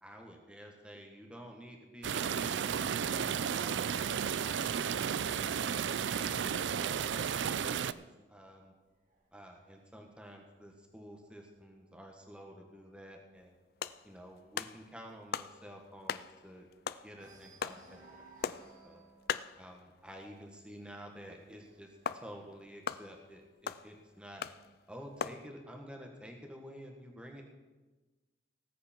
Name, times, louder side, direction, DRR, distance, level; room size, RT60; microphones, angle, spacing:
voice 1, 0.0-4.1 5.5-7.9 8.3-8.7 9.3-13.6 14.0-16.7 17.0-19.0 19.6-24.4 24.9-27.4, equal, 5° right, 1 dB, 1.7 m, -50 dB
sound 1, 2.0-7.9, right 7 dB, 85° right, 0.4 m, -33 dB
sound 2, 8.7-11.9 12.4-12.7 12.9-13.0 13.4-16.7 17.1-23.6 24.5-25.5, right 3 dB, 45° right, 1.9 m, -62 dB
sound 3, 13.6-20.6 20.9-21.0 21.3-21.4 22.0-25.5, left 7 dB, 55° left, 0.4 m, -41 dB
18.5 x 8.4 x 4.6 m, 1.2 s
head